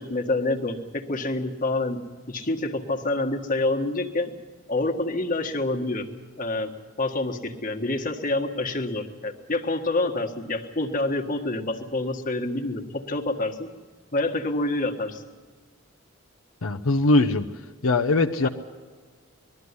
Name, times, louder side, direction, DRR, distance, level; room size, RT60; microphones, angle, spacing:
voice 1, 0.0-2.0 2.3-4.3 4.7-6.1 6.4-6.7 7.0-13.7 14.1-15.2 18.4-18.5, left 2 dB, 40° left, 4 dB, 1.6 m, -27 dB
voice 2, 16.6-17.4 17.8-18.5, left 2 dB, 80° left, 3 dB, 0.8 m, -21 dB
20.5 x 13.5 x 9.7 m, 1.5 s
head